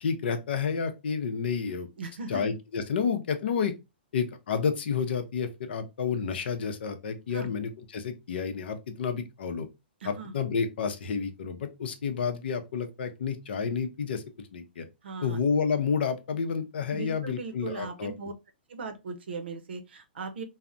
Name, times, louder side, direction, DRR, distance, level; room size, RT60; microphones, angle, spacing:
voice 1, 0.0-1.9 2.3-3.7 4.1-9.7 10.0-14.2 14.5-14.8 15.2-18.1, left 6 dB, 70° left, 0.6 m, -30 dB
voice 2, 2.0-2.4 7.3-7.5 10.0-10.3 15.0-15.4 16.9-18.3 18.7-20.4, right 4 dB, 75° right, 0.6 m, -38 dB
3.2 x 2.0 x 2.5 m
hypercardioid pair, 140°, 6 cm